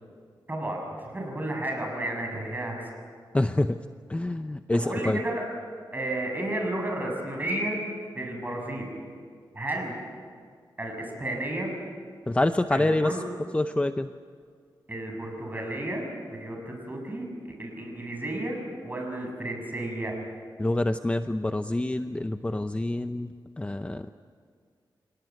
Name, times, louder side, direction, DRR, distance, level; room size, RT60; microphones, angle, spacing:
voice 1, 0.5-2.9 4.7-5.4 5.9-7.8 8.1-8.9 9.5-10.0 10.8-11.7 12.7-13.2 14.9-20.1, right 1 dB, 20° right, 1 dB, 6.7 m, -32 dB
voice 2, 3.3-3.8 4.1-5.2 12.3-13.1 13.5-14.1 20.6-24.1, left 2 dB, 15° left, 9 dB, 0.6 m, -26 dB
28.0 x 18.0 x 9.3 m, 2.1 s
wide cardioid pair, 95°, 8 cm